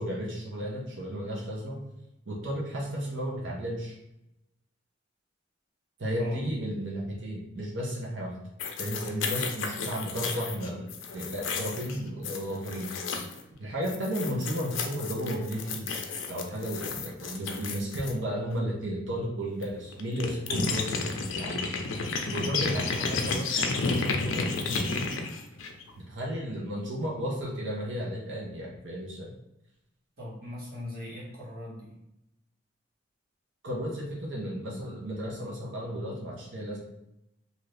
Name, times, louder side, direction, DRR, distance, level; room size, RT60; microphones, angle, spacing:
voice 1, 0.0-1.8 2.3-4.0 6.0-8.4 8.8-10.9 11.1-12.9 13.6-15.9 16.3-20.9 21.4-21.7 22.3-25.1 26.0-29.3 33.6-36.8, equal, 75° right, -3 dB, 0.7 m, -33 dB
voice 2, 6.1-6.5 30.2-31.9, left 1 dB, 50° right, -6 dB, 1.2 m, -40 dB
sound 1, 8.6-13.4 13.8-18.1 19.6-19.7 19.9-25.9, left 4 dB, 85° left, 0.4 m, -32 dB
2.8 x 2.5 x 3.3 m, 0.87 s
head